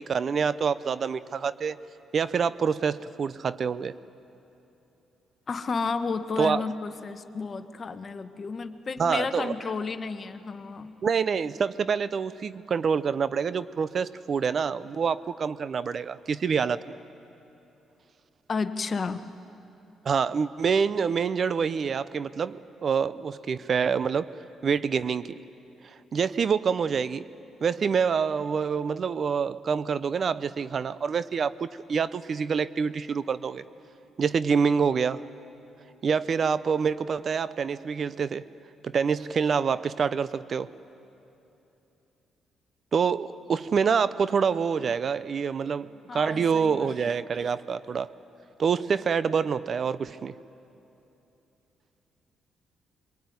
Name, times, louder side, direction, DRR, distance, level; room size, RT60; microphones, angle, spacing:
voice 1, 0.0-1.8 2.1-3.9 6.4-6.6 9.0-9.5 11.0-17.0 20.0-24.3 24.6-25.4 26.1-27.2 27.6-33.6 34.2-35.2 36.0-38.4 38.8-40.7 42.9-48.1 48.6-50.4, right 6 dB, 50° right, 16 dB, 0.6 m, -26 dB
voice 2, 5.5-10.9 18.5-19.2 46.1-47.0, left 4 dB, 40° left, 9 dB, 1.2 m, -32 dB
24.0 x 22.5 x 9.4 m, 2.9 s
cardioid pair, 80°, 0 cm